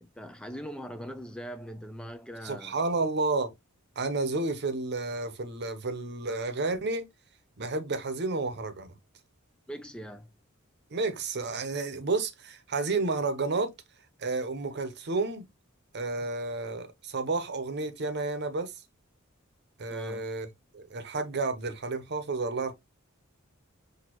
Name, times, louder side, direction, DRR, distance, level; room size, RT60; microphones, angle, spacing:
voice 1, 0.0-2.8 9.7-10.3 19.9-20.3, equal, 5° left, 0.3 m, -41 dB
voice 2, 2.4-3.5 4.0-7.1 7.6-8.9 10.9-13.7 14.2-15.4 15.9-18.7 19.8-20.5 20.7-22.7, right 3 dB, 55° right, 0.8 m, -31 dB
6.1 x 2.7 x 2.9 m
head